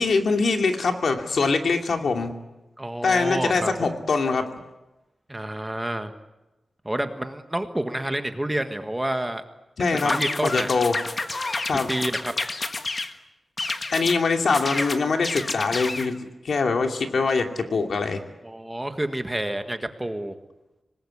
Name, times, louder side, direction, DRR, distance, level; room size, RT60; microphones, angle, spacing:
voice 1, 0.0-2.3 3.0-4.5 9.8-10.2 10.4-11.0 11.6-11.9 13.9-16.2 16.4-18.2, left 4 dB, 65° left, 4 dB, 2.6 m, -23 dB
voice 2, 2.8-3.9 5.3-6.1 6.8-9.4 9.8-10.7 11.7-12.3 18.4-20.3, right 1 dB, 10° right, 7 dB, 1.6 m, -29 dB
sound 1, 10.0-13.1 13.6-14.2 14.5-16.1, left 3 dB, 35° left, 1.5 m, -29 dB
26.0 x 20.0 x 9.9 m, 1.0 s
wide cardioid pair, 150°, 0 cm